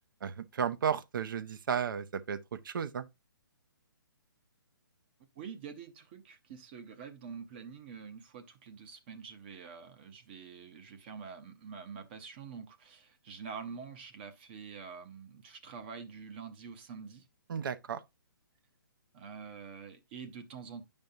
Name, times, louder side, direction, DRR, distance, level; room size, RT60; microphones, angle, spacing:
voice 1, 0.2-3.1 17.5-18.0, right 7 dB, 65° right, 0.6 m, -34 dB
voice 2, 5.4-17.3 19.1-20.9, right 6 dB, 30° right, 0.7 m, -46 dB
9.3 x 5.2 x 2.6 m
hypercardioid pair, 160°, 12 cm